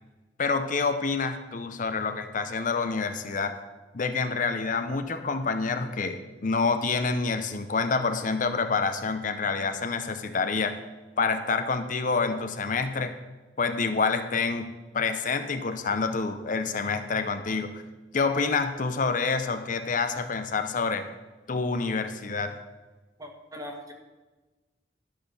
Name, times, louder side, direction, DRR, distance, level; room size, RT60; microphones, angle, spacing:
voice 1, 0.4-3.6 3.9-10.8 11.2-13.1 13.6-17.8 18.1-21.1 21.5-22.6, left 4 dB, 50° left, 8 dB, 0.7 m, -27 dB
voice 2, 23.2-23.9, equal, 20° right, 3 dB, 1.5 m, -40 dB
12.0 x 6.0 x 6.8 m, 1.2 s
head